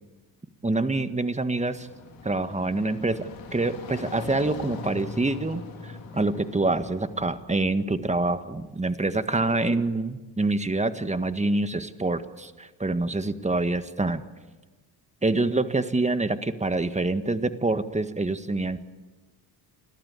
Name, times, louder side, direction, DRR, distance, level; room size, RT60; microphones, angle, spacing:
voice 1, 0.6-1.9 2.2-14.2 15.2-18.8, right 2 dB, 15° right, 10 dB, 1.7 m, -26 dB
sound 1, 1.5-7.5, left 4 dB, 70° left, 4.0 m, -41 dB
28.5 x 13.0 x 8.5 m, 1.2 s
hypercardioid pair, 55°, 47 cm